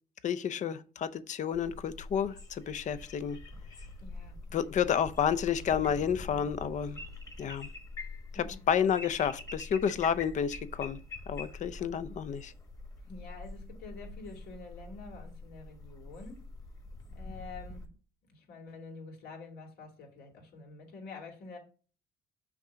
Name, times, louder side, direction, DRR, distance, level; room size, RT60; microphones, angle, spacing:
voice 1, 0.2-3.4 4.5-7.0 7.4-7.7 8.7-11.0 11.3-12.5, left 8 dB, 45° left, 0.6 m, -30 dB
sound 1, 1.5-17.9, left 2 dB, 20° left, 1.4 m, -45 dB
voice 2, 4.0-4.4 8.3-8.7 13.0-16.4 17.1-17.9 18.3-21.6, left 3 dB, 70° left, 2.6 m, -47 dB
6.0 x 3.8 x 5.7 m
cardioid pair, 110°, 17 cm